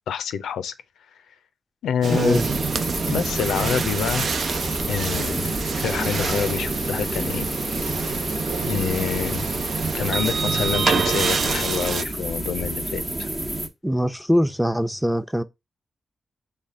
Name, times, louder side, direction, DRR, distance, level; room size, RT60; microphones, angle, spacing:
voice 1, 0.1-0.7 1.8-2.4 3.1-4.3 4.9-7.5 8.7-9.5 9.9-13.3, left 8 dB, 85° left, 0.4 m, -27 dB
sound 1, 2.0-12.0, right 5 dB, 65° right, 0.5 m, -27 dB
voice 2, 2.1-2.5 13.8-15.4, equal, ahead, 0.7 m, -22 dB
sound 2, 2.3-13.7, right 1 dB, 30° right, 1.0 m, -29 dB
4.1 x 3.4 x 3.6 m
supercardioid pair, 45°, 0 cm